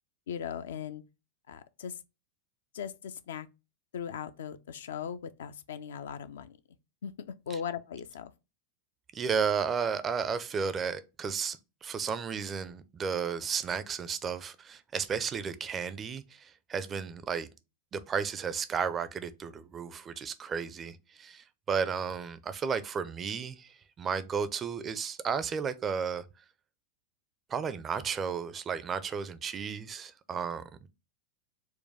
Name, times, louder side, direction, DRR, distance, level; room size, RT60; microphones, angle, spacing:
voice 1, 0.3-1.0 1.5-2.0 2.7-3.5 3.9-6.6 7.0-8.3, left 8 dB, 60° left, 0.3 m, -39 dB
voice 2, 9.1-17.5 17.9-26.3 27.5-30.9, right 6 dB, 25° right, 0.4 m, -33 dB
4.4 x 2.2 x 3.3 m
figure-of-eight pair, 90°, 0 cm